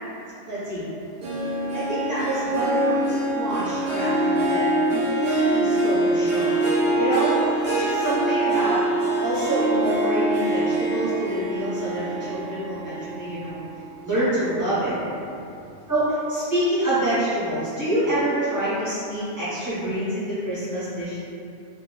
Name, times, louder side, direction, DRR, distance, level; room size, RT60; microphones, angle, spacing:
voice 1, 0.5-0.8 1.7-6.5 7.0-8.8 9.2-13.6 14.0-14.9 15.9-21.2, right 1 dB, 20° right, -12 dB, 0.6 m, -27 dB
Harp, 1.2-13.9 14.4-14.8 15.2-15.3, right 1 dB, 60° right, 0.7 m, -24 dB
2.2 x 2.1 x 3.0 m, 2.6 s
omnidirectional pair, 1.3 m